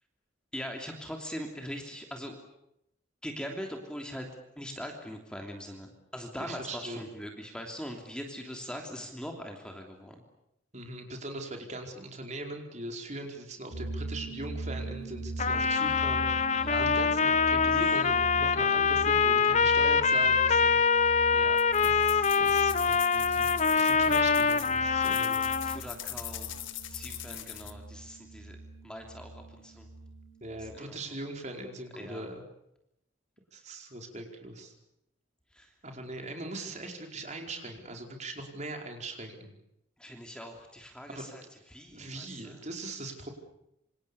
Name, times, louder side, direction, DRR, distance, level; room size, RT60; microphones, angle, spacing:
voice 1, 0.5-2.3 3.2-4.3 4.6-10.2 16.5-17.0 17.7-17.8 21.3-21.6 23.1-23.4 25.0-25.2 25.6-28.6 28.8-29.9 30.6-31.0 31.9-32.3 35.5-35.7 40.0-41.4 41.7-42.6, equal, 5° left, 3 dB, 3.1 m, -42 dB
voice 2, 6.3-7.1 10.7-20.8 21.8-25.5 30.4-32.4 33.5-34.7 35.8-39.5 41.1-41.5 41.9-43.3, right 2 dB, 35° right, 3 dB, 4.8 m, -41 dB
sound 1, 13.7-30.8, right 2 dB, 85° right, 4.0 m, -41 dB
Trumpet, 15.4-25.8, left 5 dB, 35° left, 0.9 m, -25 dB
sound 2, 21.6-27.7, left 13 dB, 80° left, 2.1 m, -42 dB
27.0 x 27.0 x 7.1 m, 0.82 s
head